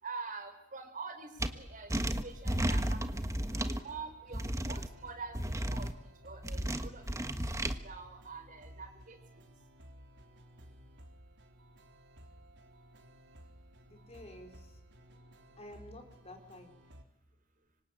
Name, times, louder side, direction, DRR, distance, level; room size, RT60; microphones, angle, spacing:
voice 1, 0.0-1.9 2.2-3.3 3.6-5.9 6.2-7.0 7.8-9.2, right 4 dB, 40° right, 7 dB, 4.5 m, -45 dB
sound 1, 1.3-17.0, equal, 60° right, 3.9 m, -56 dB
sound 2, 1.4-1.5 1.9-3.8 4.3-4.9 5.3-5.9 6.4-7.7, right 1 dB, 15° right, 1.4 m, -33 dB
voice 2, 13.9-14.8 15.6-16.7, left 1 dB, 30° left, 4 dB, 4.3 m, -51 dB
26.0 x 24.5 x 8.9 m, 0.84 s
head